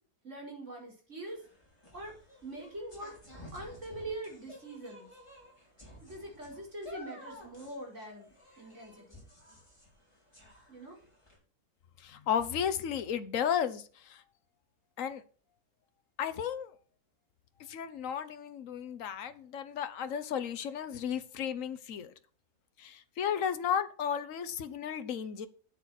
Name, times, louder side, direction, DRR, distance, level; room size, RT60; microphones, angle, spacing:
voice 1, 0.2-1.4 1.9-2.2 2.4-3.2 3.5-5.1 6.0-9.2 10.7-11.0, right 1 dB, 50° right, 5.2 m, -43 dB
sound 1, 1.2-11.4, left 1 dB, 20° left, 6.1 m, -53 dB
voice 2, 12.0-14.2 15.0-15.2 16.2-16.7 17.7-22.1 22.8-25.5, left 8 dB, 60° left, 1.4 m, -34 dB
12.5 x 8.4 x 4.3 m
omnidirectional pair, 1.6 m